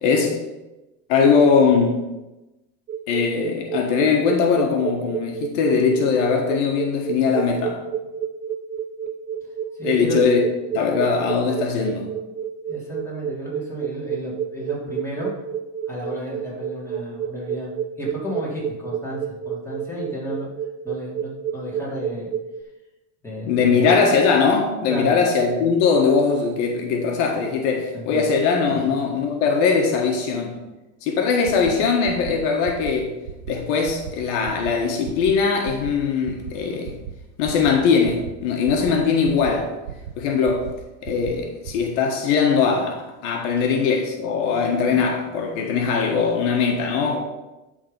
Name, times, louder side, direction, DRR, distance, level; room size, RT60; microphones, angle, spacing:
voice 1, 0.0-0.4 1.1-2.1 3.1-7.8 9.8-10.4 10.7-12.1 23.5-30.6 31.0-33.1 33.5-37.0 37.4-39.7 40.2-40.7 41.0-47.2, left 5 dB, 70° left, 2 dB, 1.5 m, -20 dB
sound 1, 2.9-22.6, right 8 dB, 20° right, 0.4 m, -29 dB
voice 2, 9.7-10.2 12.7-15.3 15.9-17.7 18.0-20.5 20.8-22.3 23.2-23.9 24.9-25.1 27.9-28.3 28.7-29.1, equal, 5° left, -6 dB, 3.3 m, -33 dB
sound 2, 31.4-31.7 32.0-32.3 32.7-32.9 33.2-33.5 33.8-34.1 34.4-34.7 35.0-35.3 35.6-35.9 36.2-36.5 36.8-37.1 37.4-37.7 38.0-38.3 38.7-38.9 39.3-39.5 39.8-40.1 40.4-40.7 41.0-41.3 41.6-41.7, right 10 dB, 90° right, 1.0 m, -34 dB
11.5 x 3.9 x 5.4 m, 1.0 s
supercardioid pair, 130°, 38 cm